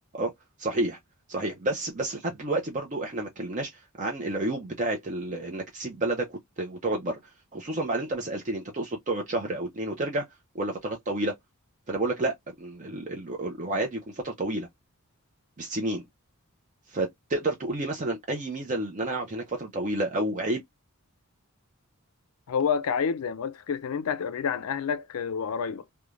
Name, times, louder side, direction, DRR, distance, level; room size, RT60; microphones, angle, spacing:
voice 1, 0.6-1.0 1.3-3.7 4.0-7.2 7.5-10.2 10.5-11.3 11.9-14.7 15.6-16.1 16.9-20.6, right 2 dB, 35° right, 0.5 m, -30 dB
voice 2, 22.5-25.8, left 6 dB, 75° left, 0.4 m, -28 dB
3.1 x 2.2 x 2.3 m
head